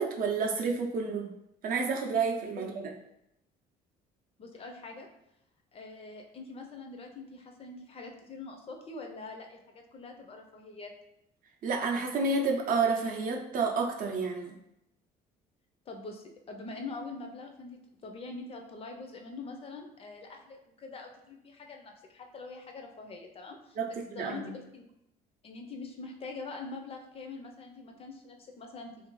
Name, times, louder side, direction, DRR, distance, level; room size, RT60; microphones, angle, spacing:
voice 1, 0.0-1.3 1.6-2.9 11.6-14.6 23.8-24.5, right 4 dB, 55° right, 1 dB, 0.5 m, -30 dB
voice 2, 4.4-5.1 5.7-10.9 15.9-23.8 24.1-24.8 25.4-29.1, left 3 dB, 35° left, 3 dB, 0.4 m, -44 dB
2.6 x 2.5 x 3.0 m, 0.81 s
cardioid pair, 110°, 17 cm